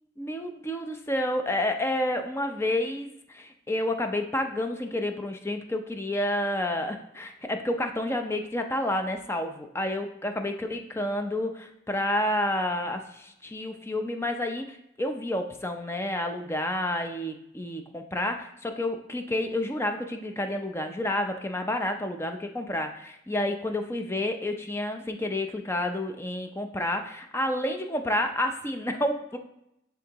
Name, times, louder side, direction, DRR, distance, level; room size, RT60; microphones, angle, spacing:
voice 1, 0.2-29.4, left 1 dB, 10° left, 6 dB, 0.5 m, -30 dB
10.5 x 3.7 x 3.0 m, 0.80 s
head